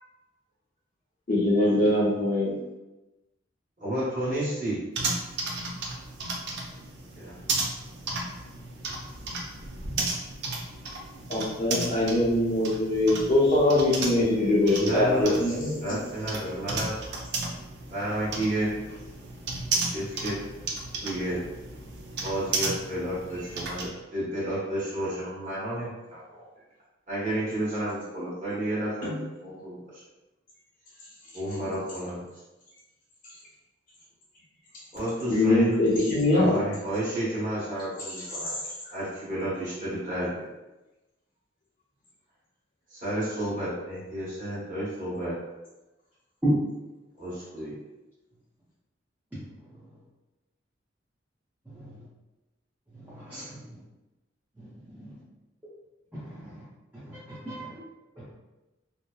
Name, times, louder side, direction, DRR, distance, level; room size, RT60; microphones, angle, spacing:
voice 1, 1.3-2.5 11.3-16.0 29.0-29.2 35.3-36.6, left 1 dB, 45° left, -7 dB, 0.7 m, -23 dB
voice 2, 3.8-4.8 7.1-7.4 14.7-15.4 15.8-16.9 17.9-18.7 19.7-20.4 21.0-21.4 22.2-26.4 27.1-29.1 29.4-30.0 31.3-32.2 34.9-35.7 36.3-38.5 38.9-40.5 42.9-45.4 47.2-47.7, right 1 dB, 45° right, -9 dB, 1.2 m, -31 dB
sound 1, 4.9-23.9, right 3 dB, 60° right, 0.4 m, -34 dB
voice 3, 53.0-53.5 56.1-56.6 56.9-57.0 57.5-57.6 58.2-58.3, right 1 dB, 10° right, -12 dB, 0.6 m, -30 dB
2.8 x 2.1 x 2.2 m, 1.0 s
head